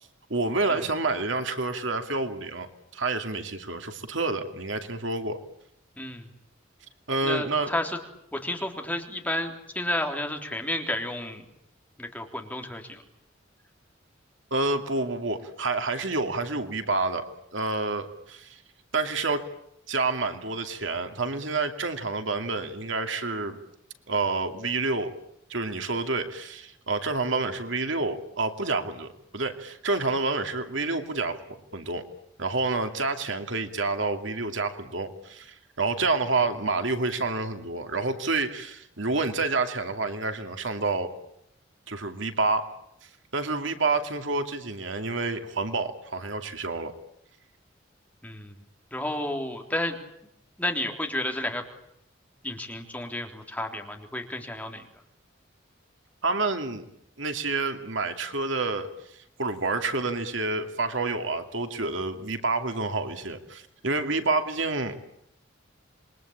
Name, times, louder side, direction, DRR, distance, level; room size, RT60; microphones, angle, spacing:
voice 1, 0.3-2.7 2.9-5.4 7.1-7.7 14.5-17.2 17.5-18.6 18.9-19.4 19.9-23.6 24.1-25.1 25.5-32.0 32.4-41.1 41.9-42.7 43.3-46.9 56.2-56.8 57.2-65.0, right 3 dB, 70° right, 7 dB, 2.6 m, -28 dB
voice 2, 6.0-6.3 7.2-8.0 8.3-11.4 12.0-13.0 48.2-48.6 48.9-50.0 50.6-51.6 52.4-54.9, left 1 dB, 10° left, 3 dB, 3.6 m, -31 dB
28.0 x 22.5 x 8.8 m, 0.77 s
head